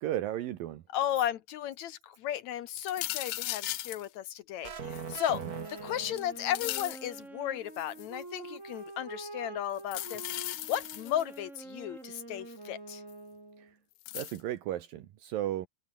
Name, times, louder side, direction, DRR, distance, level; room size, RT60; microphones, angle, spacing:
voice 1, 0.0-0.8 14.1-15.7, right 12 dB, 75° right, 3.0 m, -34 dB
voice 2, 0.9-5.4 5.7-13.0, left 11 dB, 70° left, 1.8 m, -35 dB
sound 1, 2.8-4.1 4.9-5.8 6.2-7.1 7.7-8.2 9.8-11.4 13.1-13.2 14.1-14.4, left 16 dB, 90° left, 1.6 m, -37 dB
sound 2, 4.6-6.6, right 6 dB, 40° right, 1.4 m, -41 dB
Wind instrument woodwind instrument, 5.4-13.7, right 2 dB, 20° right, 5.0 m, -46 dB
omnidirectional pair, 4.2 m